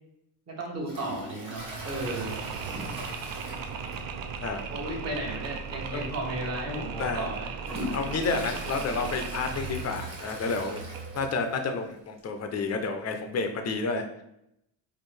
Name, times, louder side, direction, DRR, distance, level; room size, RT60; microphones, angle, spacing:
voice 1, 0.5-2.4 2.8-3.0 4.7-8.0, right 1 dB, 35° right, -1 dB, 1.1 m, -35 dB
Toilet flush, 0.8-4.3 4.5-4.6 5.1-5.2 6.0-6.1 6.7-11.6 11.9-12.0 12.2-12.3 13.3-13.4, equal, 15° right, 1.0 m, -41 dB
Mechanisms, 1.6-11.3, right 5 dB, 55° right, 0.5 m, -37 dB
voice 2, 7.9-10.8 11.1-14.2, left 4 dB, 35° left, 5 dB, 0.5 m, -30 dB
4.4 x 2.5 x 3.2 m, 0.80 s
cardioid pair, 145°, 44 cm